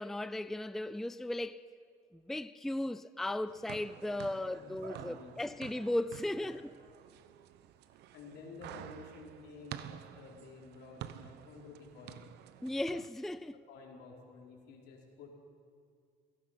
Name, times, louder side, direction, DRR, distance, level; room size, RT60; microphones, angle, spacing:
voice 1, 0.0-1.6 2.1-6.7 12.6-13.6, left 1 dB, ahead, 0.4 m, -36 dB
sound 1, 3.5-13.1, right 11 dB, 80° right, 1.0 m, -50 dB
voice 2, 4.5-5.3 6.3-6.6 8.1-12.3 13.5-15.3, left 3 dB, 80° left, 4.4 m, -52 dB
28.0 x 17.0 x 5.9 m
cardioid pair, 110°, 17 cm